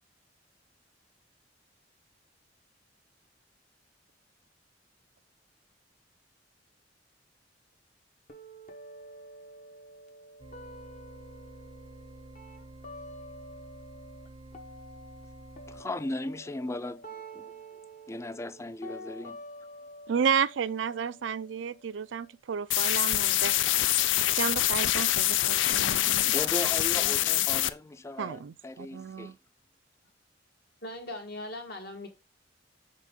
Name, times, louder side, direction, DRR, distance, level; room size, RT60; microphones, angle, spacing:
sound 1, 8.3-14.3 14.5-22.3, right 1 dB, 40° left, 1.0 m, -48 dB
sound 2, 10.4-15.8, right 2 dB, 30° right, 0.6 m, -49 dB
voice 1, 15.7-17.5 18.1-19.4 26.3-29.4, left 2 dB, 15° left, 0.3 m, -37 dB
voice 2, 20.1-23.5 24.3-26.3 28.2-29.3, right 7 dB, 80° right, 0.4 m, -32 dB
sound 3, 22.7-27.7, left 14 dB, 85° left, 0.4 m, -25 dB
voice 3, 25.8-27.6 30.8-32.1, left 1 dB, 60° left, 1.9 m, -42 dB
7.4 x 4.2 x 3.7 m
head